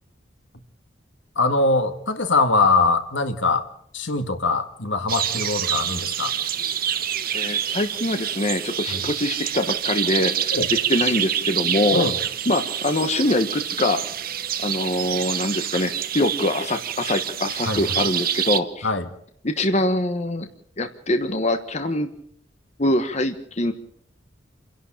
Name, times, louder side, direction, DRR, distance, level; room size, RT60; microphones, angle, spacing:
voice 1, 1.4-3.7 3.9-6.3 8.9-9.0 10.5-10.7 11.9-12.2 17.7-17.8 18.8-19.1, left 3 dB, 75° left, 8 dB, 1.9 m, -22 dB
sound 1, 5.1-18.6, right 9 dB, 50° right, 1.0 m, -27 dB
voice 2, 7.3-10.6 10.9-12.0 12.5-14.0 14.6-18.9 19.4-20.5 20.8-22.1 22.8-23.7, left 1 dB, 35° left, 8 dB, 1.2 m, -24 dB
28.0 x 11.5 x 8.8 m, 0.69 s
head